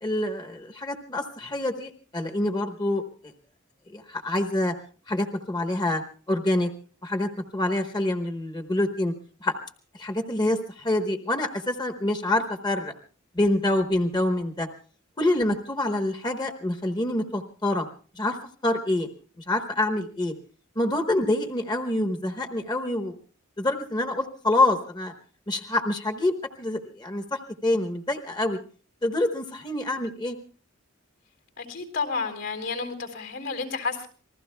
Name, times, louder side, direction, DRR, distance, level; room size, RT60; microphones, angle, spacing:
voice 1, 0.0-3.0 3.9-4.7 5.1-6.0 6.3-6.7 7.0-9.1 9.4-9.5 9.9-12.9 13.3-14.7 15.2-17.9 18.2-18.4 18.6-19.1 19.4-20.3 20.8-23.1 23.6-25.1 25.5-28.6 29.0-30.4, left 1 dB, 20° left, 4 dB, 1.1 m, -26 dB
voice 2, 31.6-34.1, left 4 dB, 75° left, 4 dB, 4.0 m, -31 dB
27.5 x 20.5 x 2.3 m, 0.40 s
head